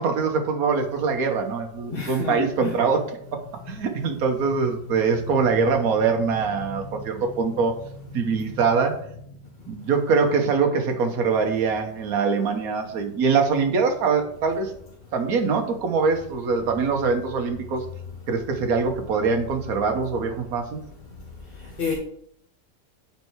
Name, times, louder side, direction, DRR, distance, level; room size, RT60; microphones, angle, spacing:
voice 1, 0.0-3.0 3.7-7.7 8.1-9.0 9.7-14.7 15.1-17.8 18.3-20.8, right 5 dB, 55° right, 1.5 m, -23 dB
voice 2, 1.9-2.7 21.8-21.9, left 5 dB, 35° left, 1.4 m, -29 dB
8.8 x 4.5 x 4.6 m
omnidirectional pair, 1.9 m